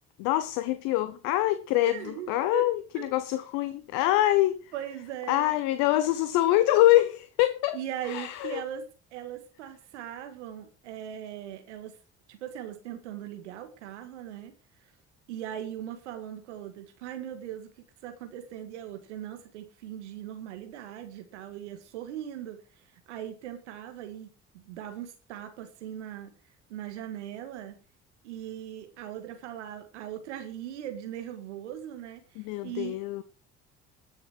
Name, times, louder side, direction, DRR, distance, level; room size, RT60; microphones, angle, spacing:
voice 1, 0.2-4.6 5.3-7.8 8.0-8.6 32.4-33.2, left 15 dB, 75° left, 0.8 m, -25 dB
voice 2, 1.8-2.7 3.0-3.1 4.7-5.6 7.7-8.8 9.1-12.0 12.3-14.5 15.3-24.3 24.5-26.3 26.7-27.8 28.2-33.0, right 10 dB, 90° right, 1.8 m, -39 dB
19.0 x 6.8 x 4.5 m
hypercardioid pair, 55°, 34 cm